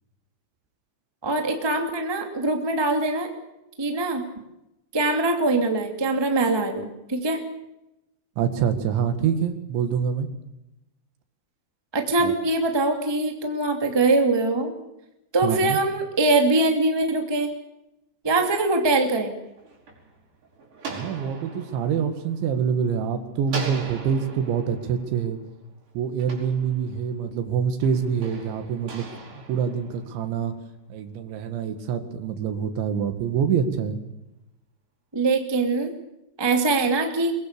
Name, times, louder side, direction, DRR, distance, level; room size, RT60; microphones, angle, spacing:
voice 1, 1.2-3.3 3.8-4.2 4.9-7.4 11.9-14.7 15.3-17.5 18.2-19.3 35.1-35.9 36.4-37.3, right 2 dB, 15° right, 3 dB, 0.9 m, -22 dB
voice 2, 8.4-10.3 12.2-12.3 15.4-15.8 20.9-25.4 26.0-29.1 29.5-30.5 30.9-34.0, right 7 dB, 70° right, 8 dB, 4.0 m, -26 dB
sound 1, 19.3-23.0 23.5-27.2 27.8-30.5, right 3 dB, 40° right, 6.3 m, -40 dB
23.0 x 22.5 x 6.8 m, 0.89 s
omnidirectional pair, 5.7 m